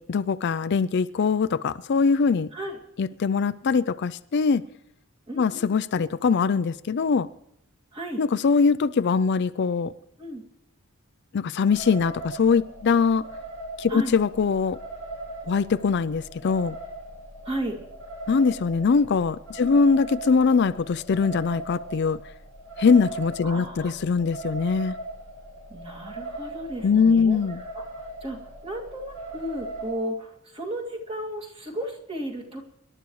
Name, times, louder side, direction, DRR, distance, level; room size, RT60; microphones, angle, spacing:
voice 1, 0.0-2.5 3.0-4.6 5.4-7.3 8.2-9.9 11.3-13.3 13.8-14.8 15.5-16.8 18.3-22.2 22.8-25.0 26.8-27.6, left 5 dB, 50° left, 14 dB, 0.4 m, -22 dB
voice 2, 5.3-5.7 7.9-8.2 10.2-10.4 13.9-14.1 17.4-17.8 19.6-19.8 23.4-23.9 25.7-27.4 27.8-32.6, right 1 dB, 25° right, 0 dB, 2.3 m, -34 dB
sound 1, 11.7-29.9, right 2 dB, 80° right, 6.9 m, -39 dB
25.5 x 12.0 x 3.1 m, 0.79 s
head